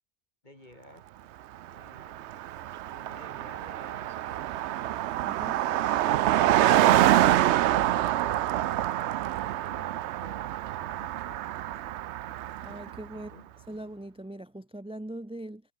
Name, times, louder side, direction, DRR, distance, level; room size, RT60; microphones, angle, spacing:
voice 1, 0.4-1.4 1.7-2.5 2.8-5.1 5.6-7.2 7.6-11.6 13.1-13.5, left 1 dB, 30° left, 4.9 m, -53 dB
Car passing by, 1.7-1.8 2.0-13.0, right 13 dB, 70° right, 0.6 m, -26 dB
voice 2, 5.2-5.6 12.6-13.3 13.7-15.6, right 1 dB, 5° right, 0.6 m, -41 dB
omnidirectional pair, 1.6 m